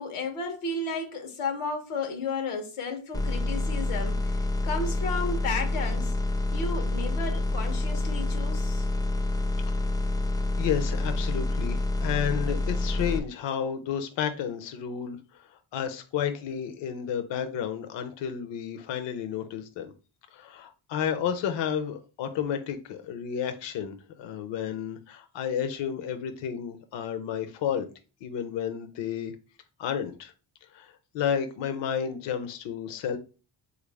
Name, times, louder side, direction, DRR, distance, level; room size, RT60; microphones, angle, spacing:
voice 1, 0.0-6.2 6.5-8.9, left 3 dB, 90° left, 0.9 m, -33 dB
sound 1, 3.1-13.2, left 2 dB, 10° left, 0.3 m, -28 dB
voice 2, 10.6-19.9 20.3-27.9 28.2-29.4 29.8-30.3 30.7-33.2, left 8 dB, 60° left, 0.6 m, -31 dB
3.2 x 2.5 x 3.2 m
cardioid pair, 75°, 49 cm